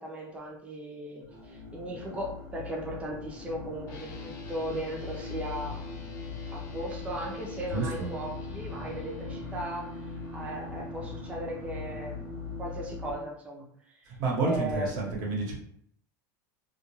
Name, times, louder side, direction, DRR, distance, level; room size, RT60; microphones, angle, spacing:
voice 1, 0.0-5.8 6.5-12.3 12.6-14.2 14.4-15.1, right 1 dB, 15° right, -2 dB, 0.5 m, -37 dB
sound 1, 1.2-13.1, left 5 dB, 40° right, 0.9 m, -41 dB
sound 2, 3.9-13.3, equal, 75° left, 0.8 m, -44 dB
voice 2, 7.7-8.1 14.1-15.5, right 3 dB, 70° right, -1 dB, 1.0 m, -30 dB
2.3 x 2.2 x 3.0 m, 0.66 s
supercardioid pair, 125°, 10 cm